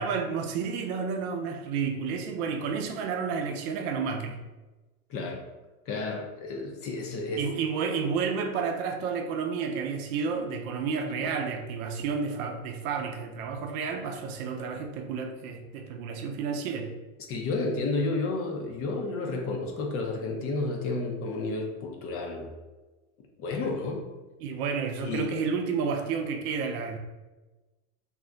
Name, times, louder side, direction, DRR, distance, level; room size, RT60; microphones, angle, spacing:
voice 1, 0.0-4.4 7.3-16.9 24.4-27.0, right 5 dB, 75° right, 3 dB, 0.6 m, -31 dB
voice 2, 5.1-5.4 5.9-7.4 17.3-22.5 23.4-24.0 25.0-25.3, left 3 dB, 35° left, 1 dB, 0.4 m, -31 dB
2.4 x 2.1 x 3.7 m, 1.2 s
supercardioid pair, 120°, 44 cm